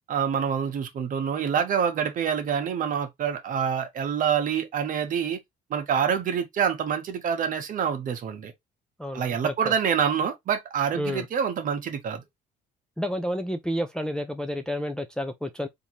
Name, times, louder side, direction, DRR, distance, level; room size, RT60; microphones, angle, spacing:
voice 1, 0.1-5.4 5.7-8.5 9.1-12.2, right 7 dB, 50° right, 1.0 m, -26 dB
voice 2, 9.0-9.7 11.0-11.3 13.0-15.7, equal, 5° left, 0.4 m, -30 dB
3.7 x 2.7 x 2.9 m
cardioid pair, 110°, 17 cm